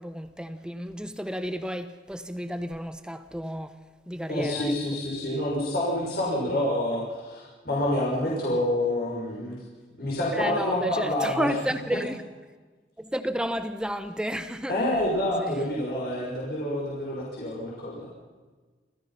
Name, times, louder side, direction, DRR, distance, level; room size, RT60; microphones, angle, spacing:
voice 1, 1.0-1.8 2.3-3.6 4.2-4.3 11.4-11.5 11.9-12.0 13.1-14.4, equal, 5° right, 0.8 m, -30 dB
voice 2, 4.3-9.6 10.0-12.0 14.7-18.1, left 1 dB, 55° left, 6.3 m, -28 dB
28.0 x 16.0 x 5.8 m
head